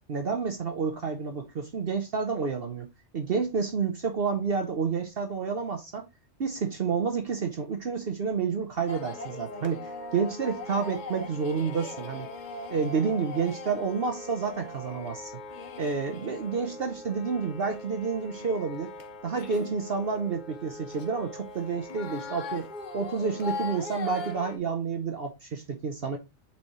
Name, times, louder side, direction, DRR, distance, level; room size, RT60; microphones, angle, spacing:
voice 1, 0.1-2.9 3.1-6.1 6.4-12.3 12.7-15.3 15.8-18.9 19.2-22.7 22.9-26.2, right 5 dB, 55° right, 1.0 m, -29 dB
sound 1, 8.9-24.6, left 2 dB, 45° left, 0.8 m, -40 dB
8.1 x 4.2 x 3.1 m
omnidirectional pair, 1.2 m